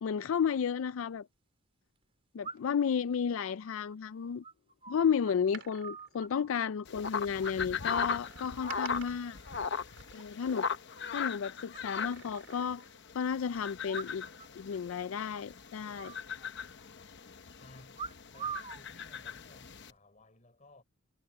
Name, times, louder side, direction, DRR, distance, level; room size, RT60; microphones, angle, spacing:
voice 1, 0.0-1.3 2.3-4.4 4.9-9.4 10.1-10.7 11.1-12.9 13.1-14.2 14.6-16.1, left 7 dB, 75° left, 0.4 m, -32 dB
sound 1, 0.6-0.7 2.4-2.9 3.3-5.3 5.6-6.6 7.4-7.9 8.2-8.6 9.0-9.6 9.8-9.9 10.2-10.3 10.6-10.7 11.0-11.1 11.7-12.8 13.8-14.5 14.7-14.8 15.1-15.5 15.9-16.9 17.9-18.8 19.6-19.9, right 6 dB, 30° right, 3.6 m, -45 dB
Door, 5.3-7.1 8.1-11.0 11.9-13.0 13.3-13.4, right 8 dB, 65° right, 4.8 m, -53 dB
sound 2, 6.8-19.9, left 6 dB, 55° left, 0.9 m, -39 dB
voice 2, 17.6-20.8, left 1 dB, 35° left, 4.3 m, -58 dB
head